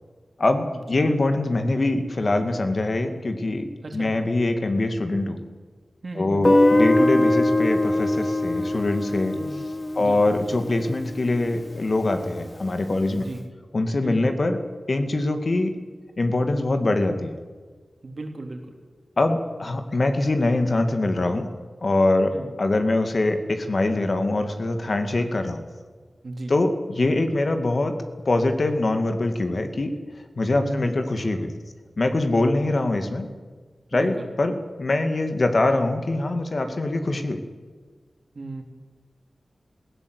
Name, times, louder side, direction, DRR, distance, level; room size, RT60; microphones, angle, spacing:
voice 1, 0.4-5.4 6.2-9.3 10.0-13.3 13.7-14.6 14.9-15.7 16.2-17.4 19.2-21.5 21.8-22.3 22.6-25.6 26.5-27.9 28.3-29.9 30.4-31.5 32.0-33.3 33.9-37.4, left 2 dB, 50° left, 6 dB, 2.1 m, -23 dB
voice 2, 6.0-6.5 9.3-9.6 10.0-10.2 13.1-13.4 14.0-14.3 18.0-18.7 22.3-22.6 26.2-26.5 30.6-31.0 33.9-34.3 38.3-38.6, right 2 dB, 55° right, 3 dB, 3.4 m, -35 dB
Guitar, 6.4-11.3, left 1 dB, 25° left, 1.0 m, -22 dB
19.0 x 17.0 x 8.1 m, 1.5 s
wide cardioid pair, 85°, 0 cm